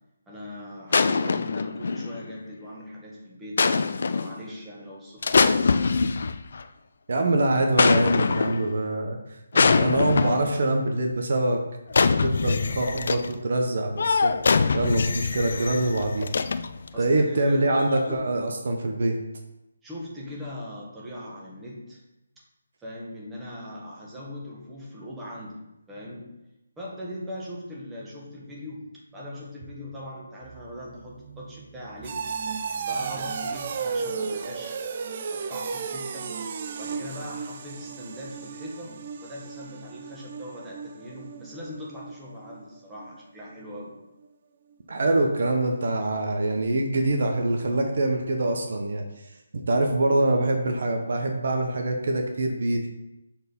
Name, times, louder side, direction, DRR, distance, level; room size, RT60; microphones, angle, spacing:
voice 1, 0.3-5.6 16.9-18.3 19.8-22.0 22.8-25.6 25.9-26.3 26.8-32.2 32.9-34.8 35.3-36.3 36.8-43.9, left 1 dB, 10° right, -5 dB, 1.7 m, -40 dB
sound 1, 0.9-2.4 3.6-4.4 5.2-6.6 7.8-8.8 9.5-10.6 11.9-13.3 14.0-16.9 17.7-18.1, left 4 dB, 60° left, 0.5 m, -23 dB
voice 2, 7.1-9.2 9.5-11.6 12.2-14.3 14.7-16.3 17.0-19.2 44.9-49.0 49.6-52.8, right 2 dB, 60° right, 3 dB, 1.1 m, -24 dB
sound 2, 30.4-43.1 43.4-43.8 44.2-44.3, right 5 dB, 40° right, 0.5 m, -35 dB
6.7 x 4.4 x 5.4 m, 0.92 s
figure-of-eight pair, 155°, 0 cm